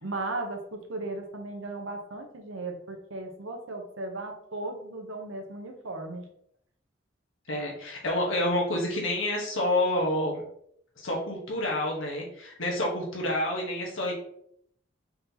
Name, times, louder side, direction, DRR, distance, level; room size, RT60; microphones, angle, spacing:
voice 1, 0.0-6.2, right 2 dB, 90° right, 3 dB, 0.9 m, -36 dB
voice 2, 7.5-10.4 11.0-14.1, left 1 dB, 85° left, -2 dB, 1.1 m, -28 dB
4.2 x 3.9 x 2.8 m, 0.69 s
head